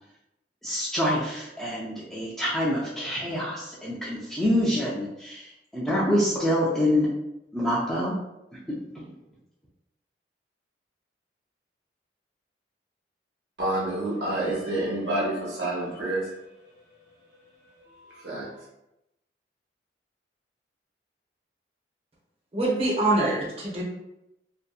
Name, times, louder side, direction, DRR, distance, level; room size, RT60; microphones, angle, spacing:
voice 1, 0.6-7.1 7.5-8.2 8.7-8.8, left 1 dB, ahead, -9 dB, 0.3 m, -26 dB
voice 2, 13.6-16.7 17.1-17.2 17.7-18.5, right 1 dB, 85° right, -5 dB, 1.1 m, -29 dB
voice 3, 22.5-23.8, right 2 dB, 35° right, -4 dB, 0.7 m, -24 dB
2.6 x 2.1 x 2.3 m, 0.88 s
head